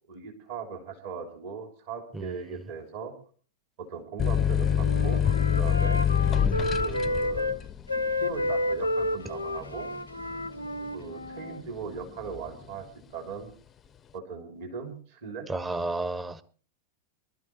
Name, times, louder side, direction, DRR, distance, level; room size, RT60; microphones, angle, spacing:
voice 1, 0.1-3.1 3.8-5.2 5.5-6.0 6.8-7.6 7.9-9.9 10.9-12.8 13.1-13.5 14.1-15.5, right 5 dB, 55° right, 3.2 m, -39 dB
sound 1, 4.2-11.5 11.9-12.6, left 8 dB, 25° left, 0.5 m, -26 dB
Wind instrument woodwind instrument, 4.5-7.6 7.9-11.7, left 1 dB, 85° left, 0.7 m, -31 dB
voice 2, 6.3-6.7 15.5-16.4, right 2 dB, 15° right, 0.8 m, -32 dB
23.5 x 12.5 x 3.1 m
figure-of-eight pair, 90°, 0 cm